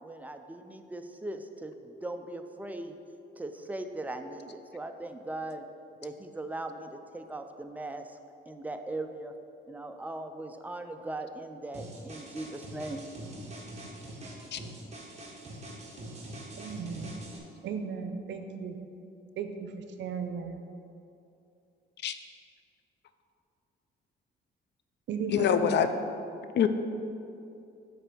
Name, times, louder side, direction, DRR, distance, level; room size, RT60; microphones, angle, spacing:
voice 1, 0.0-3.0 3.4-5.6 6.0-8.0 8.5-9.3 9.7-13.0, right 2 dB, 10° right, 6 dB, 0.5 m, -39 dB
sound 1, 11.7-17.4, right 1 dB, 35° right, 1.5 m, -44 dB
voice 2, 16.6-17.1 17.6-18.8 19.4-19.7 20.0-20.6 25.1-25.7, right 6 dB, 70° right, 7 dB, 0.7 m, -35 dB
voice 3, 25.3-25.9 26.5-26.7, left 9 dB, 65° left, 9 dB, 0.5 m, -24 dB
8.9 x 3.4 x 6.8 m, 2.6 s
cardioid pair, 110°, 19 cm